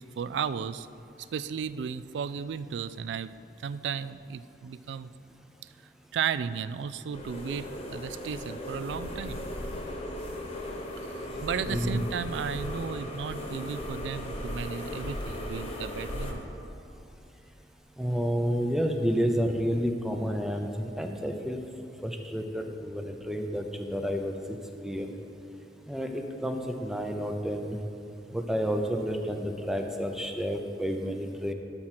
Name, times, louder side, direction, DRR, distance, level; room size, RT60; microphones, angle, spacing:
voice 1, 0.2-0.9 1.2-3.3 3.6-5.1 5.6-5.7 6.1-9.4 11.0-11.1 11.4-16.4, right 7 dB, 80° right, 15 dB, 0.3 m, -34 dB
sound 1, 7.1-16.3, left 1 dB, 35° left, 1.1 m, -37 dB
voice 2, 18.0-21.6 22.0-24.6 24.8-25.1 25.9-27.8 28.3-31.5, equal, 5° right, 4 dB, 0.5 m, -30 dB
12.5 x 4.4 x 5.8 m, 2.7 s
head